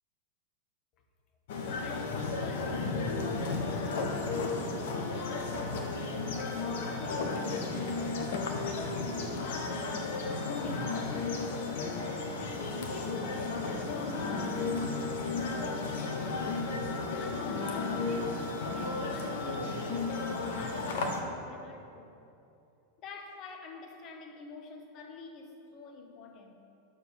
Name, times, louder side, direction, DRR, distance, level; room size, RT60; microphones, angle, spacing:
sound 1, 1.5-21.2, left 3 dB, 55° left, 1.1 m, -33 dB
voice 1, 1.6-6.0 6.3-8.2 8.6-11.0 11.5-12.3 12.9-16.7 17.2-22.1 23.0-26.5, left 3 dB, 35° left, 1.2 m, -48 dB
11.0 x 6.8 x 5.3 m
figure-of-eight pair, 90°, 0 cm